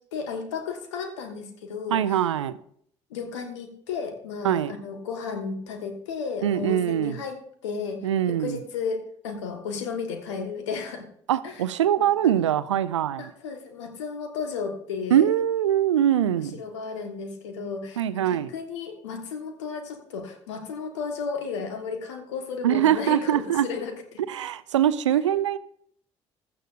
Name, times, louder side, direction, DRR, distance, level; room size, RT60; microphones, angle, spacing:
voice 1, 0.1-2.2 3.1-11.1 11.4-11.6 12.0-12.4 13.2-15.2 16.5-24.2, left 5 dB, 75° left, 6 dB, 1.4 m, -34 dB
voice 2, 1.9-2.6 4.4-4.7 6.4-7.2 8.0-8.6 11.3-13.3 15.1-16.6 18.0-18.5 22.6-23.7 24.3-25.6, right 10 dB, 80° right, 16 dB, 0.5 m, -23 dB
15.5 x 12.0 x 2.5 m, 0.65 s
figure-of-eight pair, 45°, 15 cm